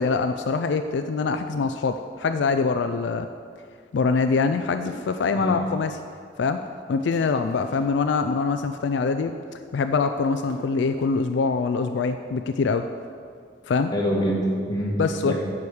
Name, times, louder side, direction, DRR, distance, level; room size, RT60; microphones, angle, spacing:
voice 1, 0.0-3.3 3.9-5.9 6.4-6.6 6.9-9.3 9.7-12.9 13.7-13.9 15.0-15.3, left 4 dB, 75° left, 8 dB, 0.4 m, -24 dB
sound 1, 4.9-5.5 7.1-7.9 10.2-11.3, equal, 65° right, 1.2 m, -44 dB
voice 2, 13.9-15.3, equal, 20° left, -4 dB, 1.7 m, -25 dB
9.1 x 4.9 x 7.0 m, 2.2 s
head